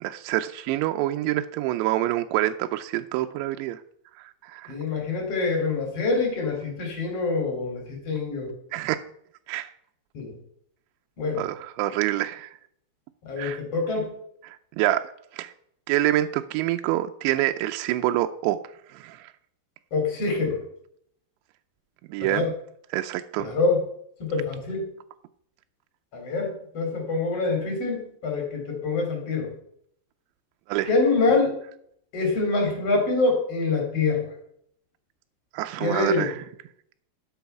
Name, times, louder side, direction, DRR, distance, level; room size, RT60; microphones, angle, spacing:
voice 1, 0.0-3.8 4.2-4.7 8.7-9.0 9.5-9.7 11.4-12.5 13.4-13.6 14.5-15.1 15.3-15.5 15.9-18.6 18.9-19.3 22.1-22.5 22.9-23.5 30.7-30.9 35.5-36.4, right 14 dB, 85° right, 7 dB, 2.8 m, -26 dB
voice 2, 4.7-8.5 10.1-10.4 11.2-11.4 13.2-14.1 19.9-20.6 22.2-22.5 23.4-23.8 24.2-24.8 26.1-29.5 30.9-31.6 32.1-34.3 35.8-36.3, left 3 dB, 35° left, 2 dB, 4.0 m, -25 dB
12.0 x 7.1 x 5.8 m, 0.69 s
omnidirectional pair, 5.1 m